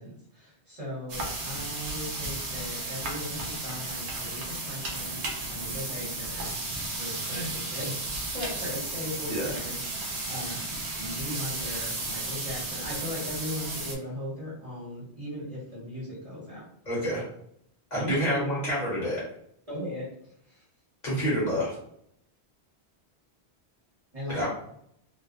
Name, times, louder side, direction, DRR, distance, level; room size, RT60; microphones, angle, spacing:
voice 1, 0.0-5.2 5.5-6.5 6.9-8.0 8.3-16.6 17.9-18.4 19.7-20.1 20.5-20.6 24.1-24.5, left 1 dB, 35° right, -7 dB, 1.0 m, -38 dB
sound 1, 1.1-14.0, right 2 dB, 80° right, 0.8 m, -34 dB
voice 2, 16.9-17.2 17.9-19.2 21.0-21.7 24.3-24.5, equal, 45° left, -6 dB, 0.9 m, -28 dB
2.4 x 2.1 x 2.5 m, 0.69 s
omnidirectional pair, 1.1 m